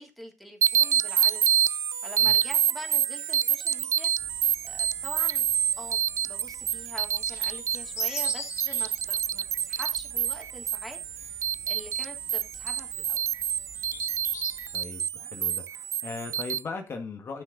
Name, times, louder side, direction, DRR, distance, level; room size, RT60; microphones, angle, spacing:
voice 1, 0.0-4.1 4.6-5.5 5.8-13.2, equal, ahead, 3.4 m, -45 dB
sound 1, 0.6-16.6, right 10 dB, 75° right, 0.4 m, -27 dB
sound 2, 4.2-14.8, left 6 dB, 75° left, 2.1 m, -46 dB
voice 2, 14.7-17.4, left 4 dB, 55° left, 2.0 m, -38 dB
11.5 x 6.6 x 4.0 m
cardioid pair, 95°, 5 cm